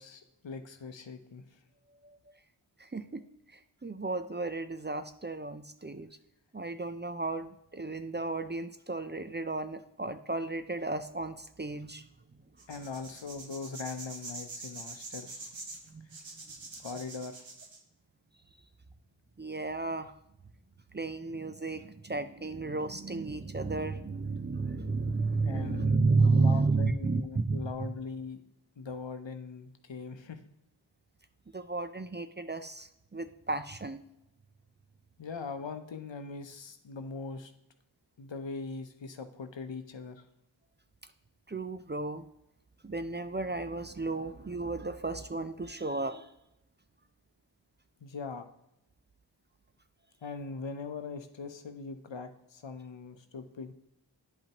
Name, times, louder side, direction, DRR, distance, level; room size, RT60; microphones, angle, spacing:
voice 1, 0.0-1.6 12.7-15.5 16.8-17.5 25.5-28.4 28.8-30.4 35.2-37.5 38.2-40.2 48.0-48.5 50.2-53.7, left 4 dB, 75° left, 8 dB, 0.8 m, -41 dB
voice 2, 2.8-3.2 3.5-6.1 6.5-12.0 15.9-16.1 19.4-20.1 20.9-27.9 31.5-34.0 41.5-42.3 42.8-46.3, right 3 dB, 25° right, 10 dB, 0.5 m, -32 dB
sound 1, 12.6-17.8, right 3 dB, 85° right, 1.1 m, -44 dB
10.5 x 5.4 x 2.9 m, 0.82 s
wide cardioid pair, 45°, 45 cm